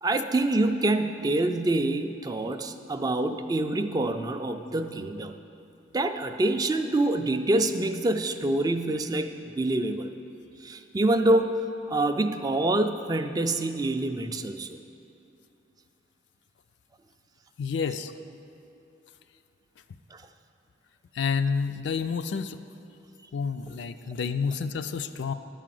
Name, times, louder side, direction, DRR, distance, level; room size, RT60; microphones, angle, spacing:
voice 1, 0.0-5.3 5.9-10.1 10.6-11.5 11.9-14.8 20.1-20.2, right 2 dB, 20° right, 7 dB, 0.3 m, -26 dB
voice 2, 17.6-18.1 21.1-22.6 23.3-25.3, left 5 dB, 65° left, 10 dB, 0.4 m, -29 dB
10.5 x 5.0 x 7.6 m, 2.7 s
head